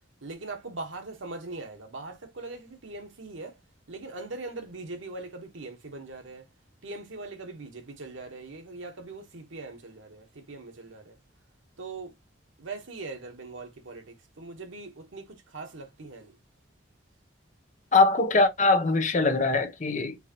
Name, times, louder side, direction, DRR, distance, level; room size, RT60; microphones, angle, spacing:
voice 1, 0.2-3.6 3.9-6.5 6.8-11.2 11.8-12.1 12.6-16.4, right 3 dB, 90° right, 1.1 m, -41 dB
voice 2, 17.9-20.2, left 3 dB, 40° left, 0.6 m, -22 dB
4.6 x 2.7 x 2.8 m
head